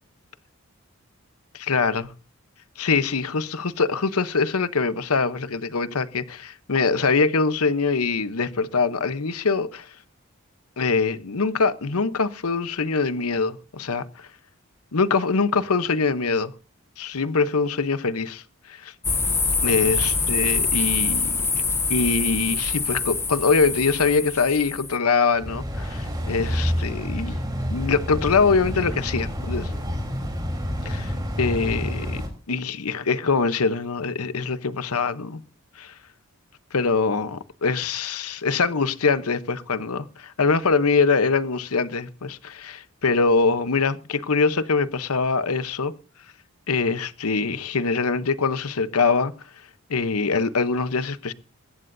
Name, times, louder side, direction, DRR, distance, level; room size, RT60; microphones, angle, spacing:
voice 1, 1.5-2.1 2.8-9.9 10.8-14.3 14.9-16.5 17.0-18.4 18.7-18.9 19.6-21.3 21.9-27.4 27.7-29.7 30.8-31.1 31.4-32.2 32.5-35.4 35.8-35.9 36.7-45.9 46.7-49.3 49.9-51.3, left 4 dB, 85° left, 0.9 m, -23 dB
sound 1, 19.0-25.0, left 4 dB, 10° left, 0.7 m, -25 dB
sound 2, 25.3-32.3, equal, 20° right, 3.6 m, -28 dB
20.0 x 15.5 x 2.7 m
head